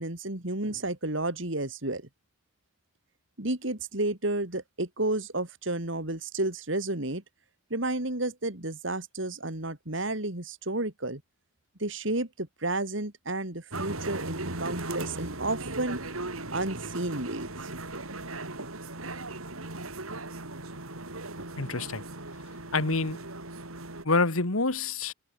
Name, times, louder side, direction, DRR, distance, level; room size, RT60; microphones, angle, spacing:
voice 1, 0.0-2.1 3.4-7.2 7.7-11.2 11.8-16.0 16.5-17.5, right 2 dB, 60° right, 3.1 m, -31 dB
sound 1, 13.7-24.0, right 2 dB, 90° right, 5.3 m, -38 dB
voice 2, 21.6-22.0 22.7-23.2 24.0-25.1, left 3 dB, 85° left, 2.1 m, -27 dB
head